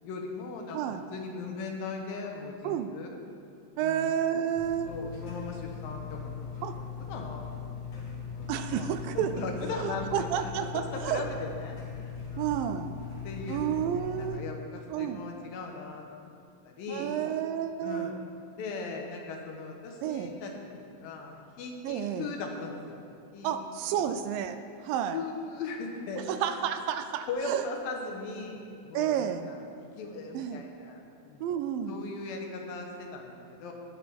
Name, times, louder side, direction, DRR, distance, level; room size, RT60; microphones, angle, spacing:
voice 1, 0.0-0.8 1.1-3.1 3.8-4.1 4.9-6.5 6.7-10.3 10.6-11.8 12.0-12.7 13.2-16.0 16.6-17.2 17.8-18.2 18.5-23.0 23.3-23.6 23.9-24.0 25.1-26.2 27.3-31.0 31.3-31.5 31.9-33.7, left 4 dB, 80° left, 1 dB, 2.8 m, -39 dB
voice 2, 2.6-3.0 3.8-4.9 6.6-6.8 8.5-9.5 9.7-11.2 12.4-12.9 13.5-14.4 14.9-15.2 16.9-18.1 20.0-20.3 21.8-22.3 23.4-25.2 26.3-27.6 28.9-29.4 30.3-30.6 31.4-32.0, right 9 dB, 80° right, 9 dB, 2.2 m, -31 dB
sound 1, 4.5-14.3, left 6 dB, 50° left, 2.6 m, -39 dB
19.5 x 7.7 x 3.5 m, 2.4 s
omnidirectional pair, 4.2 m